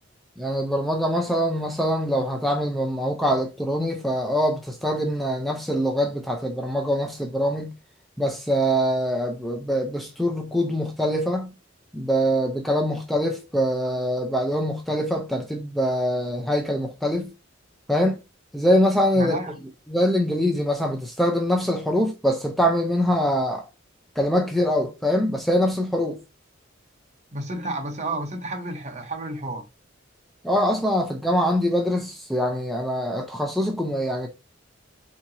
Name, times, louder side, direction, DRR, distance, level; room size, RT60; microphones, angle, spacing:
voice 1, 0.4-7.7 8.2-11.5 11.9-17.3 17.9-18.2 18.5-19.4 19.9-23.7 24.2-26.2 30.4-34.3, equal, ahead, 0.6 m, -24 dB
voice 2, 19.2-19.6 27.3-29.7, right 2 dB, 35° right, 1.0 m, -31 dB
4.4 x 2.9 x 2.7 m
head